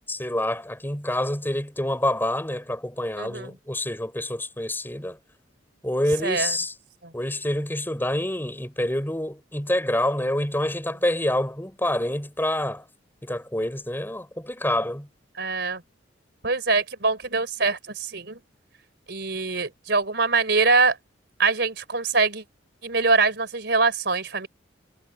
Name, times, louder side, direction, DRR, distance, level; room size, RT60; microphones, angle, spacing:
voice 1, 0.1-5.2 5.8-6.7 7.1-12.8 13.2-15.1, left 1 dB, 10° left, 5.2 m, -27 dB
voice 2, 3.2-3.5 6.2-6.5 15.4-15.8 16.4-18.4 19.1-21.0 21.4-22.4 22.8-24.5, right 4 dB, 60° right, 4.0 m, -23 dB
head